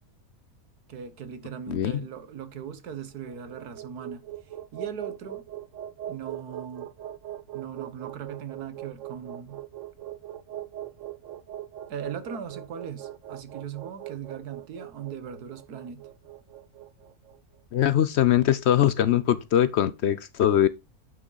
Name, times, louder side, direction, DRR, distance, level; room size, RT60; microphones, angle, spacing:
voice 1, 0.9-4.2 4.7-5.4 6.1-6.9 7.5-9.6 11.9-16.0, right 7 dB, 90° right, 1.7 m, -39 dB
voice 2, 1.7-2.0 17.7-20.7, left 11 dB, 65° left, 0.7 m, -22 dB
sound 1, 3.1-17.4, right 12 dB, 65° right, 0.9 m, -40 dB
9.6 x 6.2 x 3.9 m
omnidirectional pair, 1.6 m